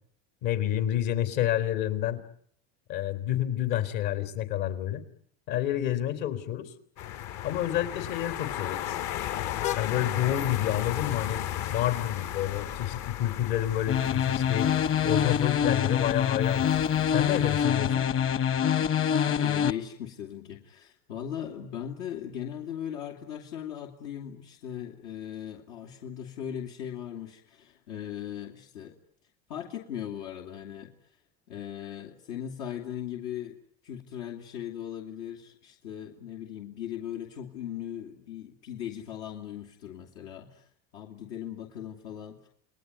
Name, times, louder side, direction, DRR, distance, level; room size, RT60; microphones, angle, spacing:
voice 1, 0.4-2.2 2.9-5.0 5.5-6.7 7.4-9.0 9.7-11.4 11.7-14.7 15.0-16.8 17.1-18.1, left 12 dB, 75° left, 10 dB, 3.8 m, -29 dB
sound 1, 7.0-17.7, left 12 dB, 55° left, 1.1 m, -35 dB
sound 2, 13.9-19.7, left 8 dB, 35° left, 1.1 m, -25 dB
voice 2, 19.2-28.9 29.5-31.2 31.5-33.6 33.8-42.5, left 10 dB, 90° left, 1 dB, 2.8 m, -39 dB
29.5 x 21.0 x 9.5 m, 0.65 s
supercardioid pair, 120°, 35 cm